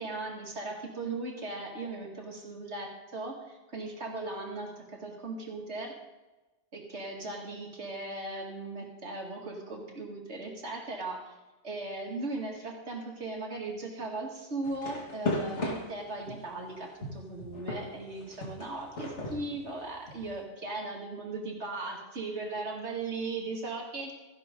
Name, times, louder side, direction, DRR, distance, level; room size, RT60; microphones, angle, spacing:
voice 1, 0.0-5.9 6.7-11.3 11.6-24.1, right 2 dB, 75° right, 0 dB, 2.4 m, -38 dB
sound 1, 14.6-16.5 17.0-20.3, left 2 dB, 80° left, 2.2 m, -36 dB
14.5 x 11.0 x 3.7 m, 1.1 s
omnidirectional pair, 1.2 m